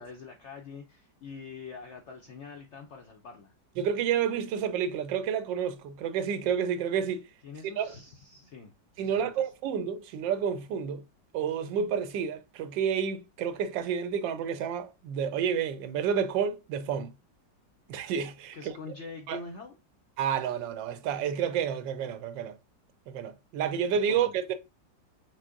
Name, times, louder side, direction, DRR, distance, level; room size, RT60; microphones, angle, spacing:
voice 1, 0.0-3.5 7.4-9.5 18.5-19.8 24.1-24.4, left 4 dB, 75° left, 0.6 m, -45 dB
voice 2, 3.8-7.2 7.8-7.9 9.0-11.0 11.3-17.1 17.9-18.7 19.3-19.4 20.2-22.6 23.1-24.5, right 7 dB, 85° right, 1.3 m, -30 dB
6.1 x 2.1 x 3.7 m
omnidirectional pair, 1.9 m